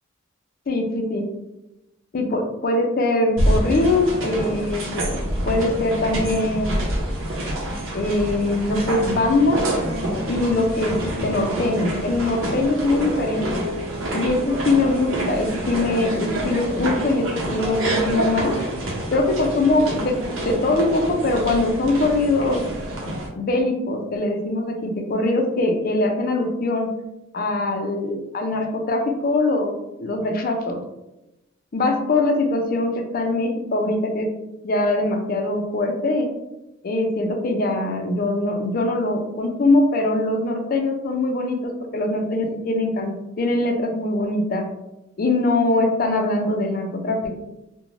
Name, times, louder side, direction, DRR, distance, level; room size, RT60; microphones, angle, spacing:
voice 1, 0.7-1.3 2.1-4.9 5.5-6.9 7.9-9.7 10.3-13.6 14.1-18.6 19.1-22.6 23.3-26.9 27.3-29.7 30.0-30.8 31.7-34.3 34.6-36.3 36.8-44.7 45.2-47.3, left 2 dB, 45° left, 4 dB, 0.4 m, -22 dB
sound 1, 3.4-23.3, right 1 dB, 85° right, 0.7 m, -27 dB
2.5 x 2.1 x 3.0 m, 0.94 s
head